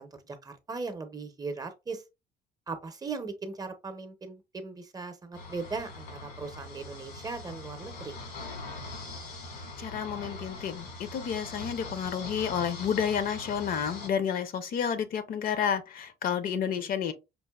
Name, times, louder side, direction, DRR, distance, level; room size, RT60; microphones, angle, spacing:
voice 1, 0.0-2.0 2.7-8.2 16.3-16.4 16.8-16.9, right 4 dB, 20° right, 0.7 m, -38 dB
sound 1, 5.3-14.1, left 3 dB, 85° left, 1.7 m, -42 dB
voice 2, 9.8-17.1, left 8 dB, 60° left, 0.7 m, -30 dB
5.3 x 2.5 x 2.3 m
cardioid pair, 110°, 17 cm